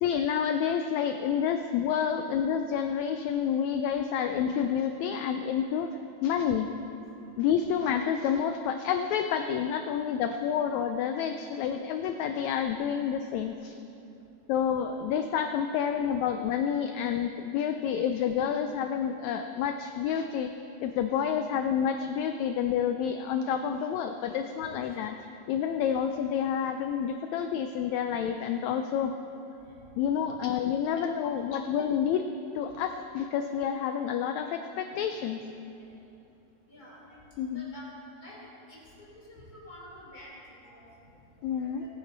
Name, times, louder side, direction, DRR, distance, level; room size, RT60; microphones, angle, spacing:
voice 1, 0.0-5.9 6.2-6.7 7.4-13.8 14.5-20.5 20.8-25.2 25.5-29.1 30.0-32.3 32.5-35.4 37.4-37.7 41.4-41.8, left 8 dB, 85° left, 7 dB, 1.6 m, -29 dB
voice 2, 36.7-37.2 37.5-37.9 38.2-38.4 38.7-41.9, equal, 25° left, -6 dB, 3.6 m, -50 dB
19.5 x 9.2 x 4.0 m, 2.8 s
omnidirectional pair, 3.7 m